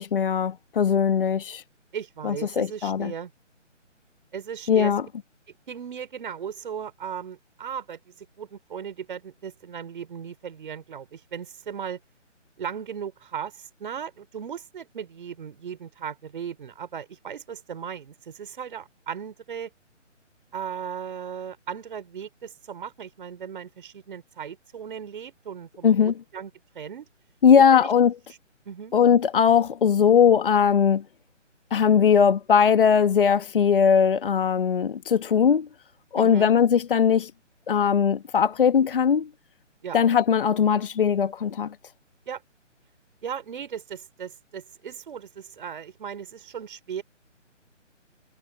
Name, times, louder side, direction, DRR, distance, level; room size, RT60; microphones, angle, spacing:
voice 1, 0.0-1.6 2.2-3.1 4.7-5.0 25.8-26.1 27.4-28.1 28.9-31.0 31.7-35.7 36.1-37.3 37.7-39.3 39.9-41.7, left 7 dB, 45° left, 1.4 m, -20 dB
voice 2, 1.9-3.3 4.3-4.9 5.7-12.0 12.6-19.7 20.5-26.5 26.8-27.1 27.7-27.9 28.7-28.9 36.2-36.5 39.8-40.0 42.3-42.4 43.2-47.0, right 8 dB, 45° right, 5.1 m, -37 dB
figure-of-eight pair, 150°, 37 cm